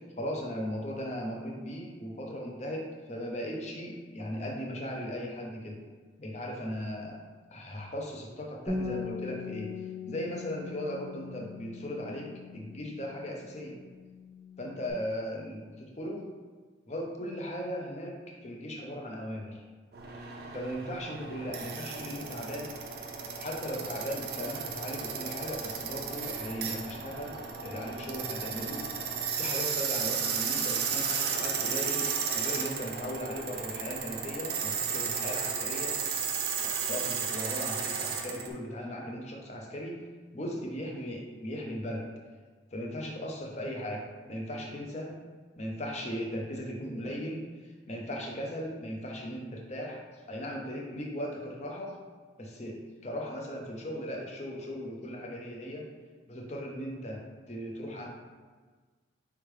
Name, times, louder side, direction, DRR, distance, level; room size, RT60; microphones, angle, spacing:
voice 1, 0.2-5.8 6.2-7.2 7.5-13.8 14.6-16.3 16.9-19.6 20.5-22.8 23.4-36.0 36.9-40.0 40.3-42.1 42.7-45.2 45.6-47.5 47.9-50.0 50.3-52.0 52.4-55.9 56.3-58.1, equal, 35° left, -1 dB, 0.6 m, -38 dB
Bass guitar, 8.7-14.9, left 4 dB, ahead, 0.8 m, -40 dB
sound 1, 19.9-38.5, right 6 dB, 55° right, 0.5 m, -34 dB
4.5 x 3.4 x 3.2 m, 1.4 s
head